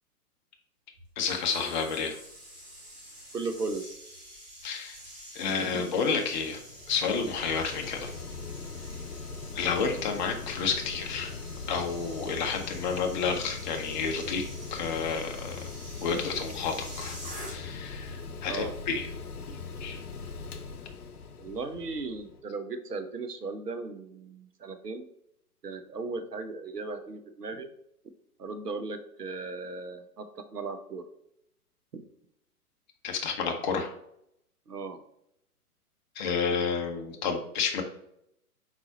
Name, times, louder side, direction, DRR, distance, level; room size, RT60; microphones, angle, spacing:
sound 1, 1.0-17.9 18.2-18.5, equal, 15° right, 1.7 m, -48 dB
voice 1, 1.2-2.1 4.6-5.0 5.3-6.6 6.9-8.1 9.5-11.3 11.7-14.4 14.7-15.6 16.0-17.2 17.5-19.1 19.5-20.0 33.0-33.9 36.2-37.8, left 5 dB, 30° left, 3 dB, 0.8 m, -30 dB
voice 2, 3.3-3.8 5.6-5.7 18.5-18.7 21.4-25.1 25.6-27.7 28.4-30.3 30.5-31.1 31.9-32.0 34.7-35.0, right 3 dB, 90° right, 8 dB, 0.9 m, -36 dB
Mechanical fan, 6.1-22.4, left 4 dB, 70° left, 0.8 m, -41 dB
4.6 x 4.0 x 2.8 m, 0.76 s
figure-of-eight pair, 125°, 46 cm